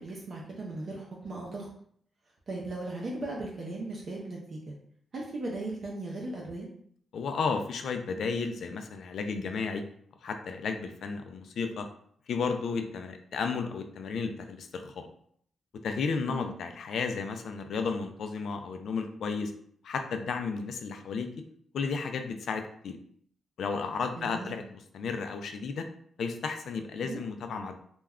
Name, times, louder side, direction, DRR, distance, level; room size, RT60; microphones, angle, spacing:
voice 1, 0.0-1.7 2.5-4.7 5.1-6.7 16.3-16.5 24.2-24.5 27.0-27.2, right 2 dB, 45° right, -3 dB, 0.5 m, -37 dB
voice 2, 7.1-9.8 10.2-11.9 12.3-15.1 15.8-19.5 19.8-21.3 21.7-23.0 23.6-25.9 26.2-27.8, left 5 dB, 70° left, 6 dB, 0.3 m, -33 dB
2.2 x 2.1 x 3.5 m, 0.64 s
wide cardioid pair, 150°, 0 cm